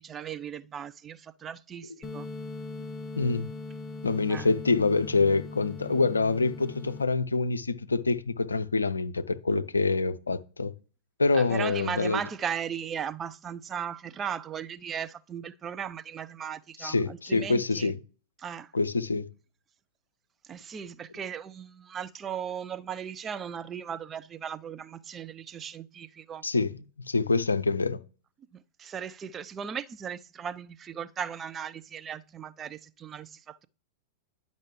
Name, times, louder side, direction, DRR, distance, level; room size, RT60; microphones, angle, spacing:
voice 1, 0.0-2.3 4.3-4.5 11.3-17.9 18.4-18.7 20.5-26.4 28.8-33.7, right 8 dB, 25° right, 0.4 m, -37 dB
sound 1, 2.0-7.0, left 3 dB, 20° left, 0.7 m, -40 dB
voice 2, 3.2-3.5 4.0-10.7 11.2-12.2 16.8-18.0 18.7-19.3 26.4-28.0, left 3 dB, 80° left, 0.5 m, -26 dB
10.5 x 5.3 x 3.2 m
figure-of-eight pair, 95°, 0 cm